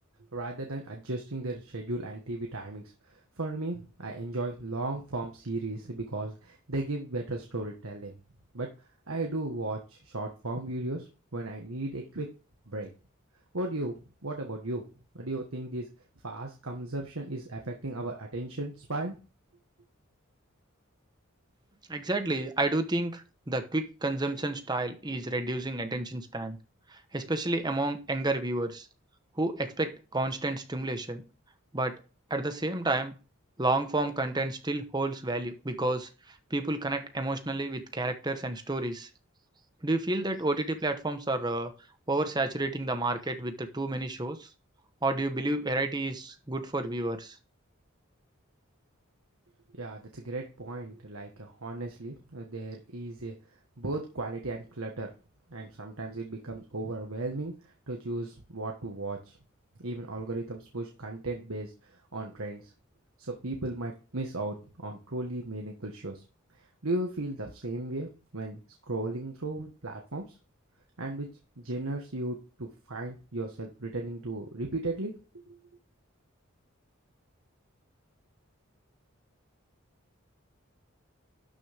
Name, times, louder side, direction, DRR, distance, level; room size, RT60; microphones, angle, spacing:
voice 1, 0.3-2.8 3.4-8.1 8.5-8.7 9.1-12.3 12.7-12.9 13.5-13.9 14.2-14.8 15.1-15.9 16.2-19.1 49.8-53.3 53.8-55.1 55.5-57.5 57.9-59.3 59.8-61.7 62.1-62.7 63.2-66.2 66.8-68.6 68.9-70.3 71.0-71.3 71.6-75.1 75.5-75.6, right 2 dB, 80° right, 2 dB, 1.6 m, -35 dB
voice 2, 21.9-26.6 26.9-28.9 29.4-31.2 31.7-32.0 32.3-33.1 33.6-39.1 39.8-41.7 42.1-44.5 45.0-47.4, right 2 dB, 20° right, 7 dB, 1.2 m, -30 dB
12.0 x 6.4 x 3.6 m, 0.34 s
head